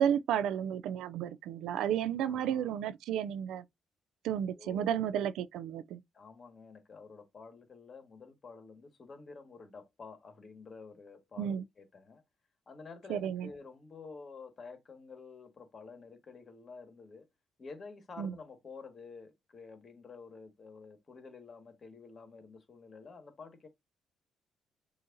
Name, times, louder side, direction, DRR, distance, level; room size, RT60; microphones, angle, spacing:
voice 1, 0.0-3.6 4.2-6.0 11.4-11.6 13.1-13.5 18.2-18.3, right 9 dB, 85° right, 0.4 m, -32 dB
voice 2, 2.2-2.8 4.5-5.2 6.1-12.2 12.7-17.3 17.6-23.7, left 4 dB, 40° left, 1.7 m, -50 dB
6.3 x 2.8 x 2.6 m
cardioid pair, 90°, 0 cm